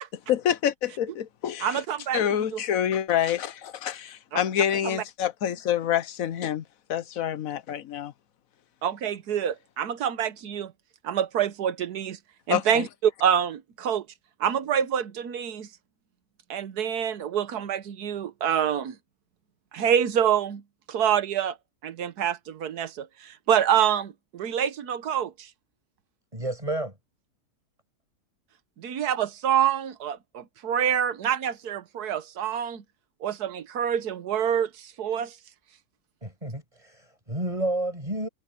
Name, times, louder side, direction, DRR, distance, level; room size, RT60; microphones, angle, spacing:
voice 1, 0.3-1.8 2.1-6.6 6.9-8.1 12.5-12.8, left 10 dB, 65° left, 1.2 m, -27 dB
voice 2, 1.6-2.2 2.5-2.6 4.3-4.4 4.8-5.0 8.8-10.7 11.0-12.2 12.5-14.1 14.4-15.7 16.5-19.0 19.7-20.6 20.9-21.6 21.8-25.5 28.8-32.8 33.2-35.3, right 9 dB, 80° right, 1.5 m, -26 dB
voice 3, 26.3-26.9 36.2-38.3, right 1 dB, 20° right, 6.4 m, -30 dB
omnidirectional pair, 1.7 m